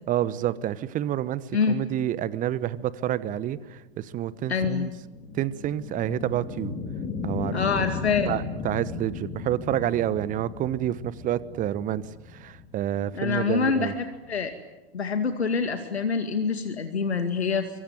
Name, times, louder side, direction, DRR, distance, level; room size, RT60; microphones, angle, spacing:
voice 1, 0.1-4.9 5.3-6.7 7.2-7.8 8.3-12.0 12.3-13.9, right 12 dB, 25° right, 17 dB, 1.1 m, -28 dB
sound 1, 3.8-14.5, left 5 dB, 25° left, 3.1 m, -36 dB
voice 2, 4.5-4.9 7.5-8.4 13.1-13.9 14.3-14.5 14.9-17.7, left 5 dB, 80° left, 7 dB, 2.3 m, -25 dB
25.0 x 24.0 x 9.3 m, 1.1 s
figure-of-eight pair, 105°, 32 cm